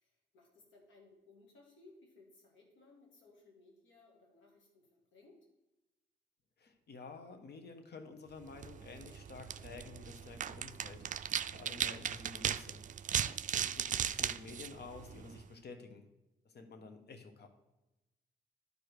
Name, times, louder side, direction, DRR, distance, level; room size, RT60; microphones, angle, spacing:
voice 1, 0.0-5.4 13.1-13.4, left 3 dB, 80° left, 0 dB, 2.1 m, -62 dB
voice 2, 6.6-12.8 13.6-16.1 16.4-17.5, left 4 dB, 60° left, 7 dB, 1.2 m, -51 dB
sound 1, 8.5-15.5, right 9 dB, 40° right, 0.4 m, -38 dB
11.0 x 4.8 x 4.7 m, 0.99 s
supercardioid pair, 50°, 19 cm